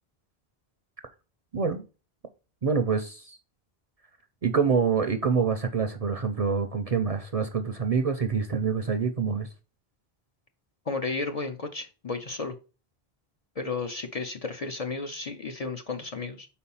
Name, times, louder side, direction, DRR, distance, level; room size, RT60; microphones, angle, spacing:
voice 1, 1.5-1.8 2.6-3.4 4.4-9.5, right 5 dB, 45° right, 0.5 m, -26 dB
voice 2, 10.9-12.6 13.6-16.5, left 3 dB, 45° left, 0.6 m, -33 dB
4.5 x 4.3 x 5.5 m
omnidirectional pair, 1.0 m